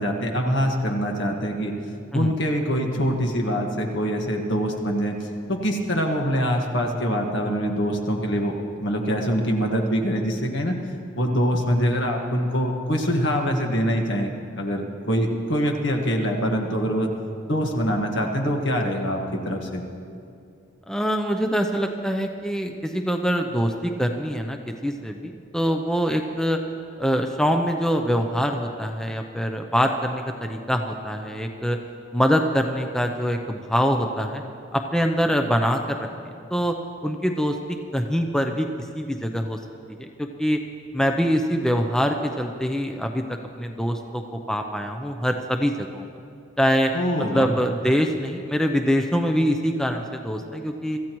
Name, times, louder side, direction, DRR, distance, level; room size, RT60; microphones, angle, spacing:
voice 1, 0.0-1.7 2.1-5.2 5.5-8.5 8.8-10.7 11.2-17.1 17.5-19.8 46.9-47.5, equal, 70° left, 2 dB, 1.6 m, -24 dB
voice 2, 20.9-26.6 27.0-31.8 32.1-34.4 34.7-36.1 36.5-36.7 37.0-39.6 40.0-40.6 40.9-46.1 46.6-46.9 47.3-51.0, equal, 5° left, 4 dB, 0.5 m, -24 dB
25.0 x 14.5 x 3.1 m, 2.5 s
head